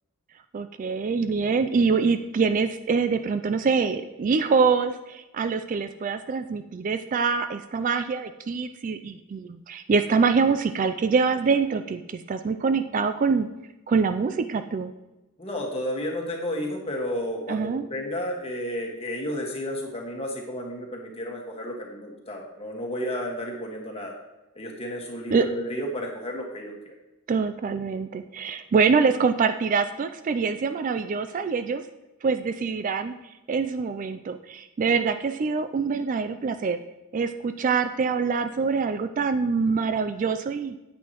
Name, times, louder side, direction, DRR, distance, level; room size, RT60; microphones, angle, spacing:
voice 1, 0.5-13.5 13.9-14.9 17.5-17.8 25.3-25.4 27.3-31.8 32.2-33.1 33.5-36.8 37.1-40.8, right 5 dB, 40° right, 10 dB, 0.3 m, -25 dB
voice 2, 15.4-24.1 24.5-26.9, equal, 30° left, 0 dB, 1.6 m, -32 dB
9.5 x 8.3 x 3.0 m, 1.0 s
head